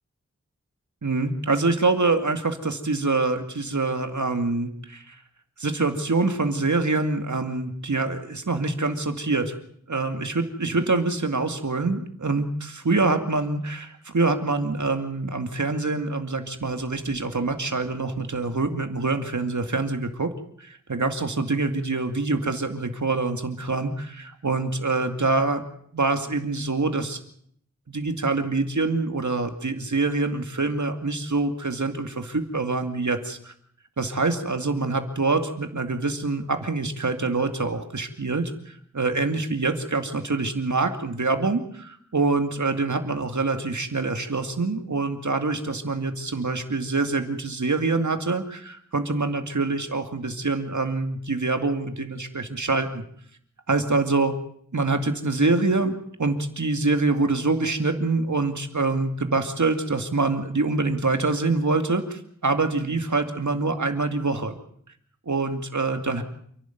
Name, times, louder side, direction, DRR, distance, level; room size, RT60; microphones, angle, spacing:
voice 1, 1.0-5.2 5.6-9.5 9.9-20.3 20.6-25.6 25.9-27.2 27.9-33.5 34.0-53.0 53.7-54.3 54.7-55.9 56.2-64.6 65.3-66.2, right 3 dB, 80° right, 6 dB, 2.4 m, -25 dB
28.5 x 11.5 x 9.3 m, 0.65 s
wide cardioid pair, 55°, 29 cm